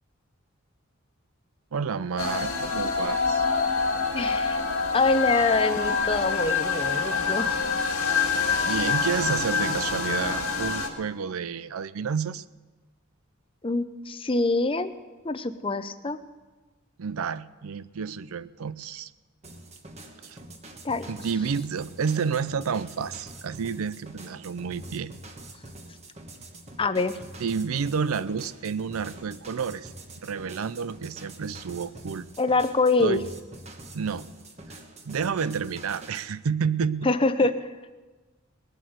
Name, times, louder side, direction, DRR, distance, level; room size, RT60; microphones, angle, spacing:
voice 1, 1.7-3.4 8.2-8.4 8.7-12.4 17.0-19.1 20.2-20.4 21.1-25.1 27.4-29.9 30.2-32.3 33.0-33.2 33.9-34.2 34.7-34.8 35.0-37.1 37.4-37.5, right 6 dB, 80° right, 17 dB, 0.5 m, -30 dB
sound 1, 2.2-10.9, left 5 dB, 90° left, 1.9 m, -26 dB
voice 2, 4.1-4.6 4.9-7.6 13.6-14.9 15.2-16.2 20.8-21.1 26.8-27.2 32.4-33.2 37.0-37.7, left 3 dB, 25° left, 12 dB, 0.6 m, -25 dB
sound 2, 19.4-36.3, right 1 dB, 30° right, 1.3 m, -45 dB
20.0 x 7.8 x 7.9 m, 1.3 s
head